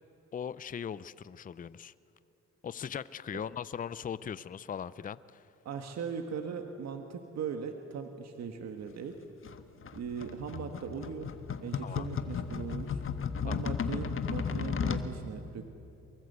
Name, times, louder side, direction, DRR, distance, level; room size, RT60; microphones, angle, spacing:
voice 1, 0.3-1.9 2.6-5.5 11.8-12.1 13.5-13.6, left 8 dB, 30° left, 17 dB, 0.5 m, -39 dB
voice 2, 5.6-9.1 9.9-11.3 11.6-13.0 13.4-15.6, right 6 dB, 60° right, 5 dB, 1.6 m, -39 dB
sound 1, 9.4-15.1, left 6 dB, 45° left, 1.4 m, -34 dB
24.0 x 22.5 x 8.1 m, 2.7 s
cardioid pair, 90°, 30 cm